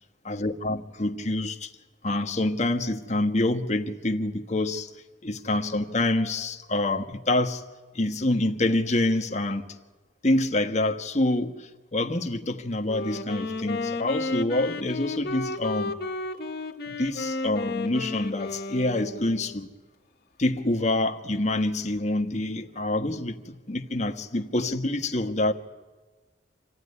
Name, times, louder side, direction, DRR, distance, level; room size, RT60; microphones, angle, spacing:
voice 1, 0.2-1.7 2.0-4.9 5.2-7.6 7.9-9.6 10.2-15.9 16.9-19.7 20.4-25.5, left 2 dB, 40° left, 1.3 m, -26 dB
Wind instrument woodwind instrument, 12.8-19.6, left 3 dB, 55° left, 1.5 m, -33 dB
27.0 x 15.5 x 9.8 m
head